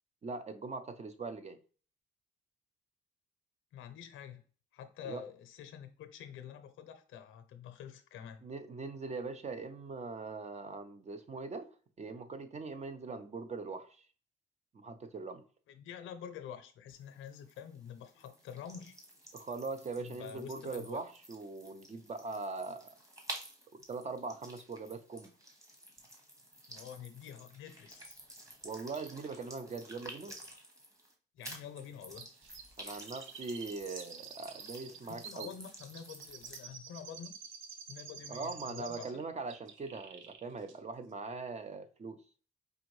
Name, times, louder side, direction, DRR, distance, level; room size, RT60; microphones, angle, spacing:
voice 1, 0.2-1.6 5.0-5.2 8.4-11.7 12.0-13.9 14.7-15.4 19.3-22.9 23.7-25.3 28.6-30.4 32.8-35.5 38.3-42.2, right 4 dB, 35° right, 0.6 m, -41 dB
voice 2, 3.7-4.4 4.7-8.4 15.7-19.0 20.0-21.0 26.7-28.2 31.3-32.3 34.9-37.3 37.9-39.1, left 8 dB, 85° left, 0.7 m, -47 dB
sound 1, 16.9-31.1 31.4-36.6, right 1 dB, 15° right, 1.3 m, -51 dB
Chirp tweet, 32.2-39.2 39.5-40.4 40.7-40.8, right 7 dB, 75° right, 0.7 m, -50 dB
4.8 x 2.6 x 3.1 m
cardioid pair, 90°, 20 cm